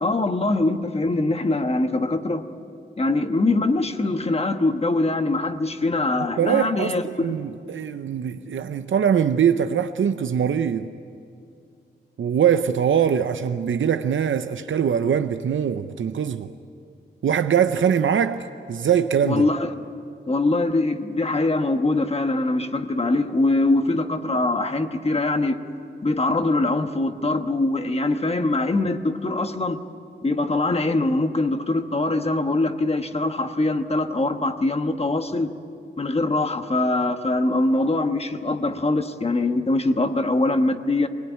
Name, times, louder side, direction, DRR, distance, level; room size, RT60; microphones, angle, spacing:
voice 1, 0.0-2.5 3.0-7.4 19.2-19.7 20.3-25.6 26.0-29.8 30.2-35.5 36.0-41.1, left 2 dB, 30° left, 1.2 m, -23 dB
voice 2, 6.4-10.9 12.2-16.5 17.2-19.4, right 8 dB, 90° right, 0.7 m, -22 dB
24.5 x 18.5 x 9.3 m
wide cardioid pair, 120°, 20 cm